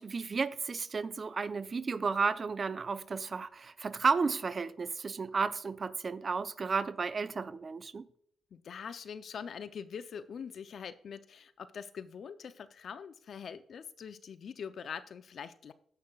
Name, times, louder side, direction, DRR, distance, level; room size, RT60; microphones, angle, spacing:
voice 1, 0.0-8.0, right 4 dB, 45° right, 0.5 m, -33 dB
voice 2, 8.5-15.7, left 7 dB, 60° left, 0.5 m, -43 dB
16.5 x 5.6 x 2.3 m
supercardioid pair, 55°, 0 cm